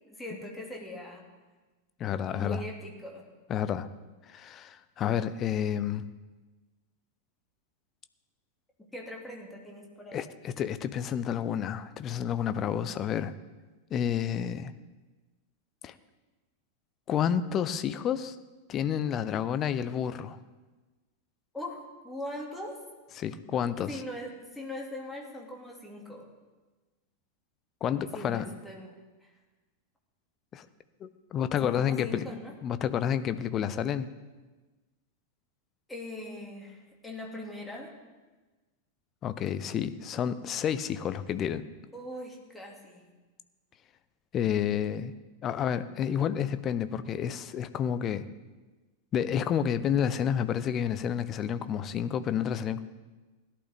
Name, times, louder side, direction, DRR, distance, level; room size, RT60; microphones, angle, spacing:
voice 1, 0.1-1.2 2.3-3.3 8.9-10.2 21.5-22.8 23.9-26.3 28.1-29.0 31.6-32.5 35.9-37.9 41.9-43.0, left 1 dB, 5° left, 0 dB, 2.4 m, -41 dB
voice 2, 2.0-2.6 3.5-3.9 4.3-6.1 10.1-13.3 13.9-14.7 15.8-15.9 17.1-18.4 18.7-20.4 23.2-24.0 27.8-28.5 30.5-30.7 31.0-32.3 32.6-34.1 39.2-41.6 44.3-45.1 45.4-48.3 49.1-52.8, left 9 dB, 30° left, 13 dB, 0.7 m, -30 dB
17.0 x 11.5 x 3.6 m, 1.2 s
figure-of-eight pair, 90°, 0 cm